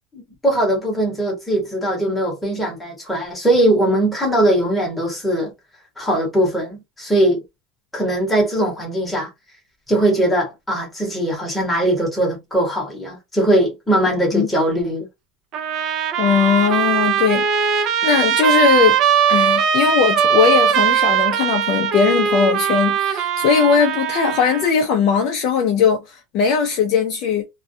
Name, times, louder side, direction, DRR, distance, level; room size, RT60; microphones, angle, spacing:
voice 1, 0.1-5.5 6.0-7.4 7.9-9.3 9.9-15.1, right 1 dB, 5° left, 1.0 m, -20 dB
Trumpet, 15.5-24.7, right 8 dB, 30° right, 0.4 m, -19 dB
voice 2, 16.2-19.0 19.3-27.5, left 6 dB, 40° left, 0.5 m, -19 dB
2.2 x 2.2 x 2.6 m
supercardioid pair, 175°, 0 cm